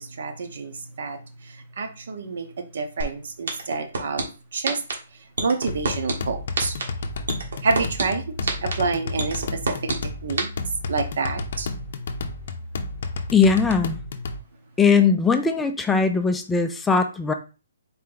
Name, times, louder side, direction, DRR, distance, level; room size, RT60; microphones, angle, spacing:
voice 1, 0.0-4.3 4.5-4.8 5.4-6.8 7.6-9.7 10.2-10.5 10.9-11.7, right 4 dB, 55° right, 6 dB, 0.9 m, -28 dB
sound 1, 3.0-3.1 3.5-4.2 4.6-4.9 5.4-6.1 6.5-6.8 7.3-8.0 8.5-8.7 9.2-9.9 10.4-10.5, right 3 dB, 75° right, 1.4 m, -24 dB
sound 2, 5.7-14.4, left 3 dB, 50° left, 0.6 m, -32 dB
voice 2, 13.3-14.0 14.8-17.3, left 5 dB, 5° left, 6 dB, 0.3 m, -19 dB
4.2 x 2.8 x 3.8 m, 0.32 s
hypercardioid pair, 170°, 0 cm